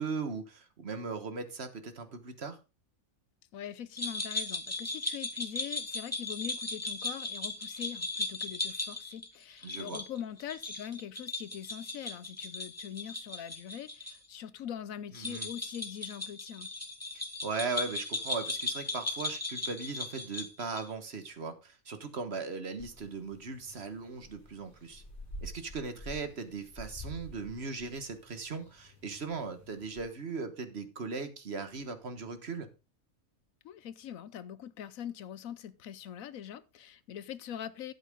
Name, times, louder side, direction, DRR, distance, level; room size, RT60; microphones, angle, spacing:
voice 1, 0.0-2.6 9.6-10.0 15.1-15.5 17.1-25.0 25.4-32.7, right 4 dB, 50° right, 1.5 m, -38 dB
voice 2, 3.5-16.7 33.6-37.9, left 9 dB, 80° left, 1.1 m, -42 dB
sound 1, 4.0-14.1 14.4-14.5 15.1-20.9, left 2 dB, 10° left, 1.6 m, -37 dB
sound 2, 22.8-30.0, equal, 35° left, 3.3 m, -49 dB
12.0 x 8.3 x 3.6 m
omnidirectional pair, 1.4 m